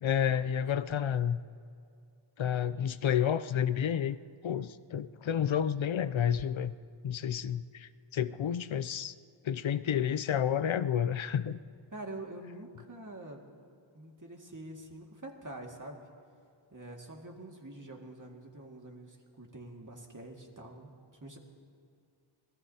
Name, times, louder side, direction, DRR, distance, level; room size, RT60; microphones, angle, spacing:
voice 1, 0.0-1.4 2.4-4.2 4.4-6.7 7.0-9.1 9.4-11.6, left 9 dB, 75° left, 14 dB, 0.5 m, -30 dB
voice 2, 11.9-13.4 13.9-16.0 16.7-20.9 21.2-21.4, right 1 dB, 40° right, 1 dB, 2.1 m, -46 dB
26.0 x 18.0 x 2.9 m, 2.4 s
wide cardioid pair, 60°, 48 cm